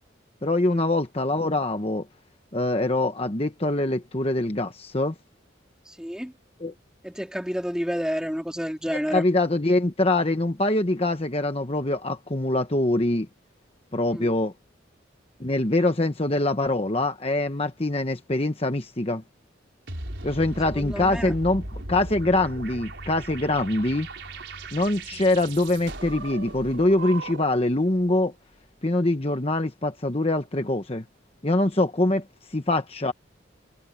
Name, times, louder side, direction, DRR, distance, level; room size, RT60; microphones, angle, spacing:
voice 1, 0.4-2.0 2.5-5.1 6.6-6.7 9.1-13.3 13.9-14.5 15.4-19.2 20.2-21.6 21.9-24.1 24.7-28.3 28.8-31.0 31.4-32.2 32.5-33.1, left 2 dB, 30° left, 1.1 m, -24 dB
voice 2, 5.9-6.3 7.0-9.3 14.0-14.3 20.7-21.3, equal, 5° right, 2.5 m, -30 dB
sound 1, 19.9-27.7, right 2 dB, 65° right, 5.2 m, -37 dB
head